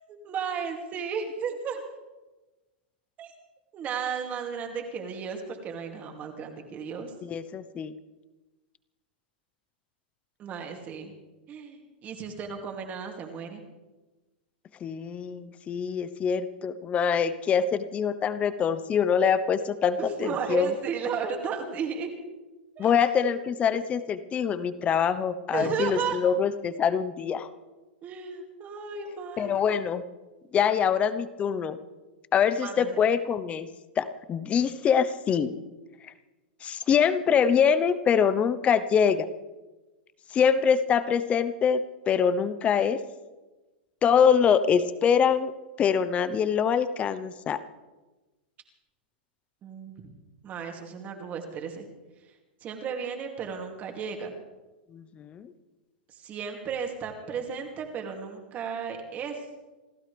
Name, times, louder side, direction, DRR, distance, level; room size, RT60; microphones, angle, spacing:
voice 1, 0.1-1.8 3.2-3.3 3.7-7.1 10.4-11.1 11.5-13.6 20.0-22.1 22.8-23.3 25.5-26.2 28.0-29.6 32.6-33.0 49.6-50.1 50.4-51.9 52.6-54.3 56.1-59.4, right 6 dB, 30° right, 3 dB, 2.7 m, -34 dB
voice 2, 7.2-7.9 14.8-20.7 22.8-27.5 29.4-30.0 30.5-31.8 32.3-33.7 34.0-35.6 36.6-39.3 40.3-41.8 42.1-43.0 44.0-45.5 45.8-47.6 54.9-55.5, left 7 dB, 25° left, 13 dB, 0.9 m, -24 dB
28.0 x 13.0 x 3.5 m, 1.2 s
hypercardioid pair, 130°, 5 cm